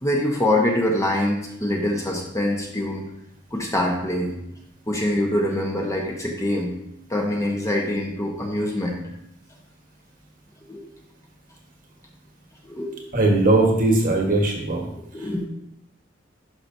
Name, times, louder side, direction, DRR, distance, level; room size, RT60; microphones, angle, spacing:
voice 1, 0.0-3.0 3.5-4.4 4.9-6.7 7.1-9.0 10.7-10.8 12.6-13.0 15.1-15.5, left 1 dB, 15° left, 0 dB, 1.0 m, -24 dB
voice 2, 13.1-14.9 15.2-15.5, right 2 dB, 45° right, 1 dB, 1.4 m, -20 dB
11.0 x 5.9 x 2.7 m, 0.78 s
head